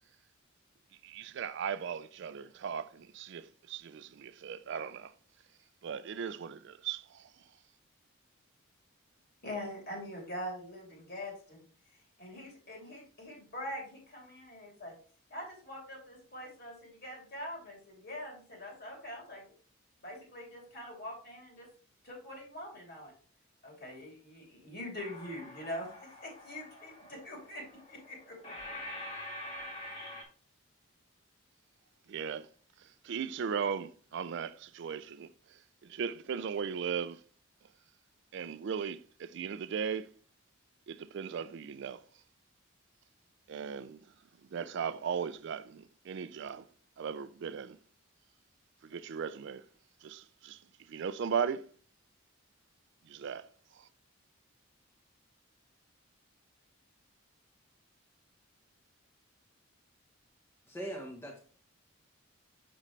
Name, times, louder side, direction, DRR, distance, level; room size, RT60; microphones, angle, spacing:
voice 1, 1.0-5.1 5.8-7.3 32.1-32.5 33.0-35.3 35.8-37.2 38.3-40.1 40.9-42.0 43.5-44.0 44.5-46.6 47.0-47.8 48.8-49.6 50.0-50.6 50.9-51.7 53.1-53.5, right 7 dB, 55° right, 0.3 m, -37 dB
voice 2, 9.4-11.6 11.9-15.0 15.3-19.5 20.0-21.7 22.0-23.1 23.6-28.4, left 1 dB, 50° left, 3.0 m, -44 dB
sound 1, 24.9-30.2, left 1 dB, 30° left, 1.8 m, -46 dB
voice 3, 60.7-61.4, right 1 dB, 10° left, 1.0 m, -40 dB
6.6 x 6.2 x 3.1 m
head